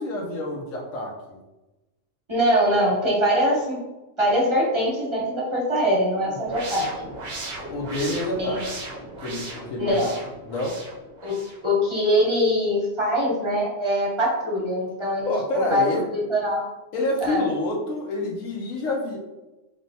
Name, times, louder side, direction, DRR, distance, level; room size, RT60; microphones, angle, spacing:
voice 1, 0.0-1.4 6.2-6.4 7.6-8.6 9.2-10.1 10.5-10.8 15.3-16.0 16.9-19.2, left 2 dB, 85° left, -2 dB, 1.2 m, -28 dB
voice 2, 2.3-3.8 4.2-6.9 8.4-8.6 9.8-10.1 11.2-15.3 15.7-16.6 17.2-17.4, equal, 25° right, -5 dB, 1.0 m, -23 dB
sound 1, 6.4-11.6, right 2 dB, 50° right, 0.7 m, -37 dB
4.0 x 3.3 x 2.7 m, 1.0 s
omnidirectional pair, 1.4 m